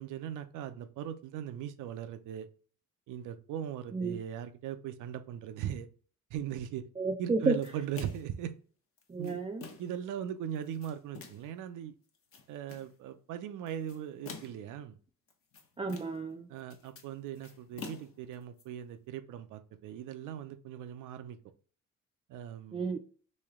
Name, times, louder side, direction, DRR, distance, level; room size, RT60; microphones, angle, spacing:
voice 1, 0.0-2.5 3.1-5.9 6.3-6.8 7.2-8.5 9.2-9.4 9.8-11.9 12.5-15.0 16.5-21.4 22.3-22.9, right 10 dB, 85° right, 10 dB, 0.5 m, -39 dB
voice 2, 7.0-7.6 9.1-9.6 15.8-16.5 22.7-23.1, right 3 dB, 20° right, 2 dB, 0.4 m, -32 dB
sound 1, 7.6-8.4 9.0-10.0 10.6-11.5 12.1-12.9 13.7-14.7 15.3-16.3 16.6-18.6, left 4 dB, 45° left, 0.9 m, -48 dB
3.2 x 2.8 x 3.5 m, 0.41 s
cardioid pair, 90°, 30 cm